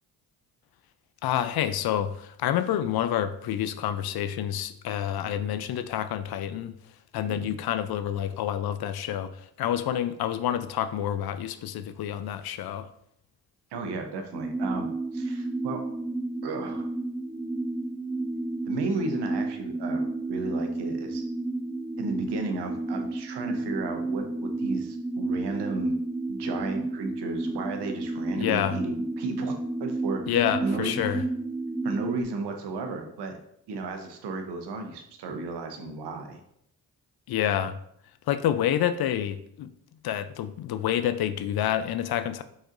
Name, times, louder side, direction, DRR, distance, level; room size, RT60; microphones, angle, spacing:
voice 1, 1.2-6.7 7.1-9.3 9.6-12.9 28.3-28.8 30.3-31.2 37.3-37.7 38.3-39.7 40.0-42.4, left 10 dB, 60° left, 12 dB, 0.5 m, -28 dB
voice 2, 7.3-7.6 13.7-15.8 16.4-16.9 18.7-21.2 22.0-26.0 26.3-31.2 31.8-33.3 33.7-36.4, right 3 dB, 70° right, 5 dB, 0.9 m, -34 dB
sound 1, 14.3-32.2, right 2 dB, 5° right, 0.3 m, -31 dB
4.7 x 4.2 x 2.6 m, 0.71 s
supercardioid pair, 45°, 42 cm